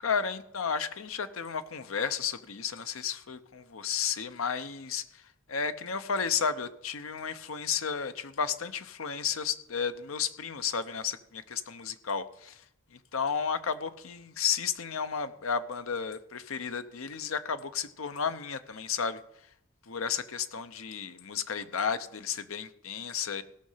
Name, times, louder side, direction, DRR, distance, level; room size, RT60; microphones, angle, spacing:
voice 1, 0.0-5.0 5.5-12.6 13.1-19.2 19.9-23.4, left 6 dB, 85° left, 11 dB, 0.8 m, -33 dB
17.0 x 6.5 x 5.7 m, 0.79 s
head